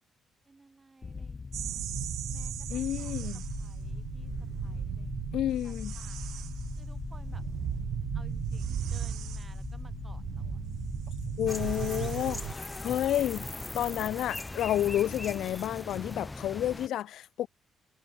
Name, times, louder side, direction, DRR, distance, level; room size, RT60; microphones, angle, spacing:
voice 1, 0.4-1.9 2.3-4.3 4.6-5.4 5.6-6.5 6.8-7.4 8.1-10.6 14.1-14.7, right 3 dB, 25° right, 5.9 m, -58 dB
sound 1, 1.0-14.0, left 4 dB, 35° left, 1.7 m, -40 dB
sound 2, 1.5-12.5, right 13 dB, 80° right, 0.5 m, -37 dB
voice 2, 2.7-3.4 5.3-5.9 11.4-13.5 13.7-17.5, left 12 dB, 80° left, 0.3 m, -30 dB
sound 3, 11.5-16.9, left 2 dB, 15° left, 3.6 m, -39 dB
cardioid pair, 90°, 0 cm